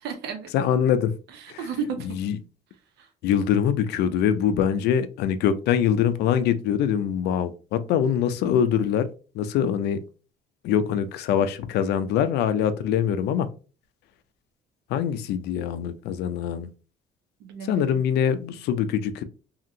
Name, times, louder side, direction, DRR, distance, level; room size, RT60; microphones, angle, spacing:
voice 1, 0.0-0.5 1.3-2.2 3.0-3.1 17.4-18.0, right 6 dB, 80° right, 7 dB, 0.7 m, -33 dB
voice 2, 0.5-1.1 1.5-1.6 2.2-2.4 3.2-9.1 9.3-10.0 10.6-13.5 14.9-16.7 17.6-19.2, left 8 dB, 75° left, 12 dB, 0.4 m, -23 dB
2.8 x 2.5 x 2.7 m, 0.35 s
cardioid pair, 110°, 17 cm